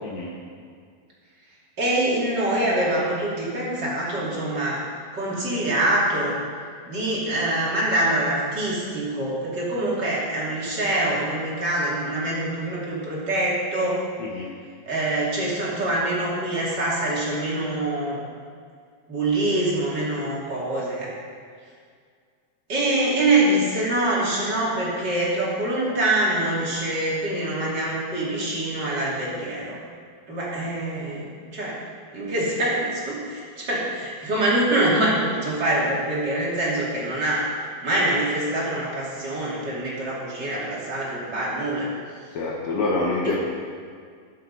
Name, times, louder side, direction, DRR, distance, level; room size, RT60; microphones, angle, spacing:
voice 1, 1.8-4.8 5.1-6.4 6.9-14.0 14.8-18.2 19.1-21.1 22.7-29.8 30.3-31.8 32.1-37.5 37.8-42.0 43.2-43.3, right 1 dB, 30° right, -6 dB, 3.1 m, -25 dB
voice 2, 42.3-43.3, left 3 dB, 60° left, -5 dB, 2.1 m, -26 dB
20.5 x 7.7 x 4.1 m, 2.1 s
omnidirectional pair, 4.3 m